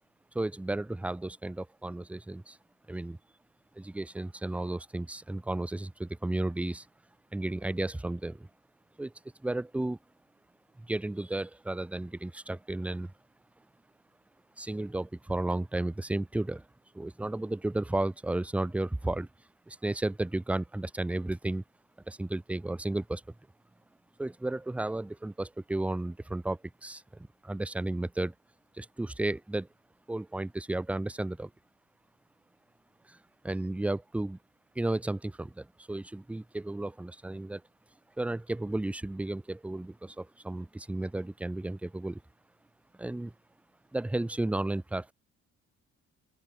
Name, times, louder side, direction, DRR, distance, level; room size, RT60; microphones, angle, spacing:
voice 1, 0.3-2.6 2.9-3.2 3.8-6.9 7.3-8.5 9.0-9.1 9.4-10.0 10.8-13.1 14.6-16.6 16.9-19.3 19.7-21.6 22.1-23.2 24.2-27.0 27.4-28.3 28.8-29.7 30.1-31.5 33.1-33.2 33.4-34.4 34.8-37.6 38.2-42.2 43.0-43.3 43.9-45.1, right 2 dB, 5° right, 0.4 m, -33 dB
open air
cardioid pair, 90°, 30 cm